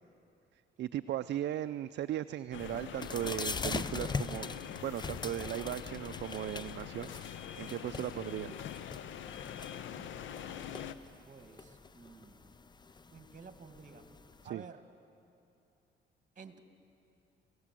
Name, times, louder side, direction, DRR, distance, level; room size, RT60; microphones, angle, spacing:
voice 1, 0.8-4.6 4.8-8.5 14.4-14.6, right 12 dB, 60° right, 11 dB, 0.5 m, -37 dB
sound 1, 2.5-10.9, left 9 dB, 75° left, 0.8 m, -44 dB
sound 2, 2.6-14.5, left 4 dB, 20° left, 0.6 m, -42 dB
voice 2, 11.3-12.5 13.1-14.0 14.4-14.8 16.4-16.6, right 5 dB, 40° right, 8 dB, 1.9 m, -52 dB
28.5 x 16.5 x 7.6 m, 2.7 s
cardioid pair, 90°, 20 cm